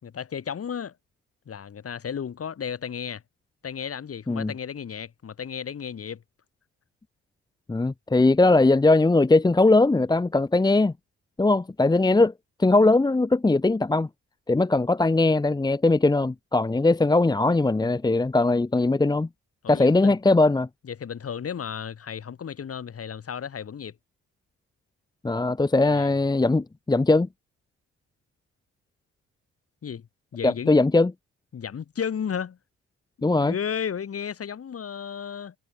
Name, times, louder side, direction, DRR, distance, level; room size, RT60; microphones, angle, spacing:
voice 1, 0.0-1.0 1.5-3.2 3.6-6.2 19.6-20.2 20.8-24.0 25.8-26.2 29.8-30.1 30.3-30.7 31.5-32.6 33.3-35.6, left 7 dB, 50° left, 6.1 m, -33 dB
voice 2, 7.7-10.9 11.4-12.3 12.6-14.1 14.5-19.3 19.7-20.7 25.2-27.3 30.4-31.1 33.2-33.5, left 2 dB, 15° left, 0.9 m, -20 dB
cardioid pair, 90°, 30 cm